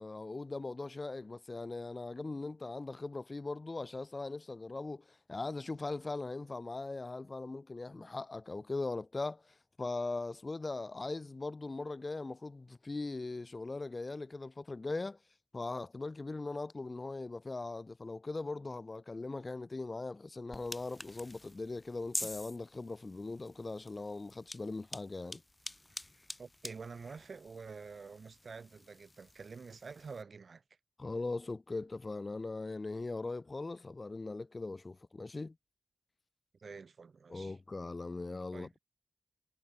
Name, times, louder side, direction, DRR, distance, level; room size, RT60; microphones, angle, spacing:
voice 1, 0.0-15.2 15.5-25.4 31.0-35.5 37.3-38.8, left 3 dB, 40° left, 1.3 m, -40 dB
sound 1, 20.5-30.2, left 2 dB, 25° left, 3.8 m, -47 dB
voice 2, 26.4-30.6 36.6-37.6 38.5-38.8, right 5 dB, 60° right, 5.4 m, -48 dB
cardioid pair, 40°, 0 cm